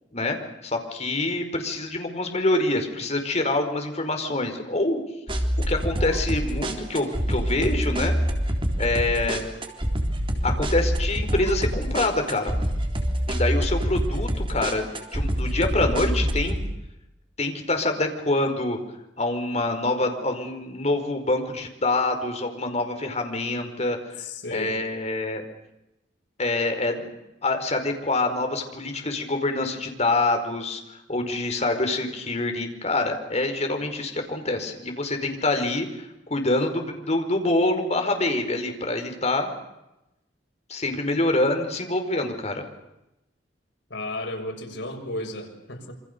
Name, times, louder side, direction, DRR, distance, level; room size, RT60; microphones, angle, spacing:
voice 1, 0.6-5.0 5.7-8.2 8.8-9.5 10.4-12.5 13.3-16.6 17.4-18.8 19.2-24.2 24.5-25.4 26.4-27.1 27.4-39.5 40.7-42.6, left 2 dB, 40° left, 5 dB, 5.0 m, -26 dB
sound 1, 5.3-16.6, equal, 30° right, 3.7 m, -26 dB
voice 2, 24.2-24.8 43.9-45.9, left 1 dB, 85° left, 2 dB, 6.7 m, -33 dB
27.5 x 26.5 x 7.0 m, 0.91 s
head